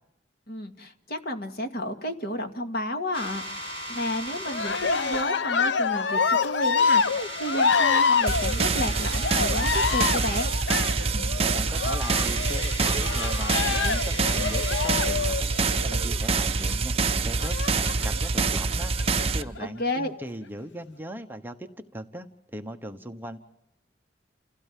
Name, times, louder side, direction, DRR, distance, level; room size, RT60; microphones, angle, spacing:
voice 1, 0.5-10.5 19.6-20.1, left 1 dB, 55° left, 5 dB, 2.1 m, -32 dB
sound 1, 3.1-5.2 6.0-6.3 6.7-10.5 11.6-11.7 11.9-15.2, equal, 30° left, 6.2 m, -37 dB
Cheering, 4.5-16.2 17.4-18.3 19.0-19.6, left 5 dB, 80° left, 0.8 m, -26 dB
sound 2, 8.3-19.4, right 4 dB, 35° right, 0.9 m, -26 dB
voice 2, 11.1-16.9 17.2-18.9 19.3-23.4, right 1 dB, 10° right, 6 dB, 1.0 m, -39 dB
29.5 x 16.0 x 7.5 m, 0.94 s
head